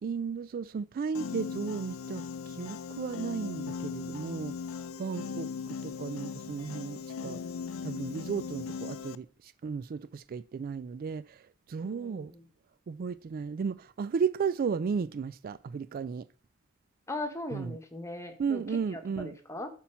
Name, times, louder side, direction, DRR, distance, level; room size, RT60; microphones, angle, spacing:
voice 1, 0.0-4.6 5.0-7.4 7.8-12.3 12.9-16.3 17.5-17.8 18.4-19.3, right 6 dB, 45° right, 0.3 m, -34 dB
Piano, 1.1-9.2, left 6 dB, 80° left, 0.5 m, -39 dB
voice 2, 11.8-12.4 17.1-18.6 18.9-19.7, left 2 dB, 15° left, 1.3 m, -39 dB
11.5 x 4.3 x 5.6 m
head